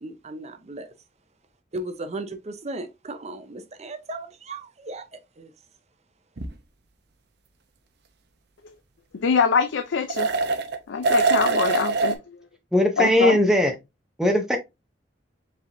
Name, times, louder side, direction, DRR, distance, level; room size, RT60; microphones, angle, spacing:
voice 1, 0.0-0.9 1.7-5.5, right 2 dB, 40° right, 0.7 m, -36 dB
sound 1, 6.4-6.5 10.1-10.8 11.0-12.2, right 4 dB, 65° right, 0.7 m, -23 dB
voice 2, 9.1-10.3 10.9-12.4 13.0-13.4, left 5 dB, 90° left, 0.5 m, -23 dB
voice 3, 12.7-13.7 14.2-14.6, left 1 dB, 5° right, 0.7 m, -19 dB
5.1 x 3.4 x 2.6 m
head